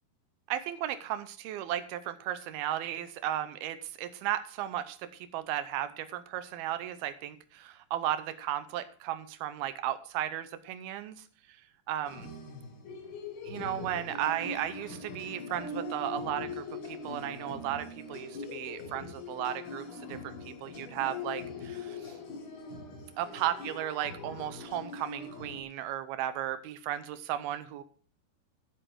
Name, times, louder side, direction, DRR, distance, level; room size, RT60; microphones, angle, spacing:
voice 1, 0.5-11.2 11.9-12.3 13.4-22.2 23.2-27.8, right 12 dB, 90° right, 11 dB, 2.7 m, -35 dB
sound 1, 12.1-25.6, left 3 dB, 80° left, 4.6 m, -42 dB
12.5 x 7.8 x 6.1 m, 0.42 s
omnidirectional pair, 4.4 m